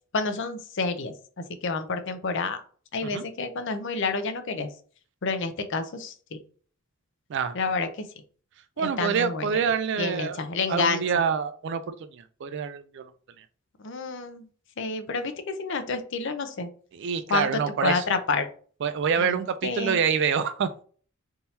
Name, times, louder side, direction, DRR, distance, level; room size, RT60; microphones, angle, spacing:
voice 1, 0.1-1.1 1.6-2.6 2.9-4.7 5.2-6.4 7.5-7.9 8.8-9.6 10.0-11.0 13.8-14.5 14.8-16.7 17.3-17.5 17.8-18.5 19.2-20.0, left 4 dB, 60° left, 8 dB, 0.6 m, -29 dB
voice 2, 8.8-10.4 10.7-13.1 13.4-13.5 16.9-18.0 18.8-20.8, right 6 dB, 60° right, 10 dB, 0.4 m, -26 dB
3.6 x 2.9 x 4.1 m, 0.42 s
head